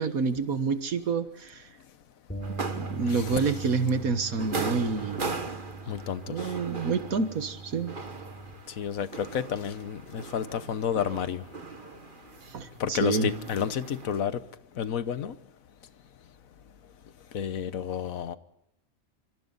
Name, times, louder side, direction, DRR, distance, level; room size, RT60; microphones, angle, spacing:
voice 1, 0.0-1.6 2.7-5.3 6.3-8.0 12.5-13.3, right 4 dB, 85° right, 1.9 m, -28 dB
Bass guitar, 2.3-8.5, right 3 dB, 10° left, 3.6 m, -41 dB
sound 1, 2.4-14.2, right 4 dB, 40° right, 1.7 m, -39 dB
voice 2, 3.1-3.4 5.9-6.4 8.8-11.4 12.8-14.4 14.8-15.3 17.3-18.4, left 8 dB, 75° left, 1.4 m, -30 dB
26.0 x 25.0 x 4.0 m
omnidirectional pair, 1.4 m